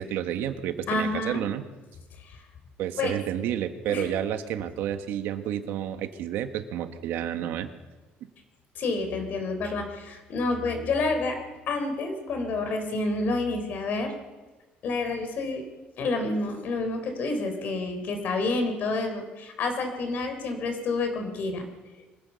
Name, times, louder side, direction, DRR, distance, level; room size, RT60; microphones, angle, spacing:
voice 1, 0.0-1.6 2.8-7.7, right 10 dB, 75° right, 8 dB, 1.5 m, -30 dB
voice 2, 0.9-1.4 2.3-2.4 3.0-3.2 3.9-4.2 8.8-11.4 11.7-14.1 14.8-15.7 16.0-21.6, left 3 dB, 50° left, 6 dB, 4.0 m, -29 dB
23.5 x 16.0 x 7.0 m, 1.2 s
cardioid pair, 140°, 4 cm